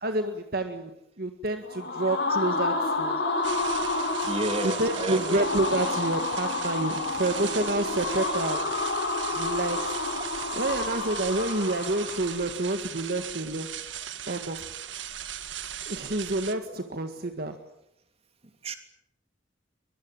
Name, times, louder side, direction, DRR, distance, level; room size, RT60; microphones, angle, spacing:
voice 1, 0.0-3.2 4.2-4.3 4.6-8.8 9.3-10.0 10.5-13.8 14.3-14.7 15.9-17.7, right 2 dB, 55° right, 6 dB, 1.8 m, -29 dB
sound 1, 1.6-12.5, left 3 dB, 70° left, 4.8 m, -30 dB
sound 2, 3.4-16.6, right 10 dB, 85° right, 1.8 m, -38 dB
voice 2, 4.2-5.4 18.6-18.8, right 1 dB, 35° right, 7 dB, 3.1 m, -31 dB
23.5 x 22.0 x 9.0 m, 0.81 s
head